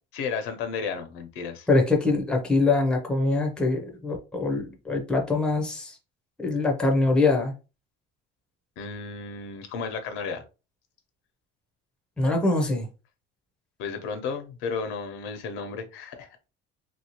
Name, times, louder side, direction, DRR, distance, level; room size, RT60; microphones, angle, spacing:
voice 1, 0.1-1.7 8.8-10.4 13.8-16.3, left 5 dB, 90° left, 0.9 m, -33 dB
voice 2, 1.7-6.0 6.4-7.5 12.2-12.9, left 3 dB, 5° left, 0.6 m, -23 dB
3.1 x 2.7 x 2.9 m
cardioid pair, 170°, 21 cm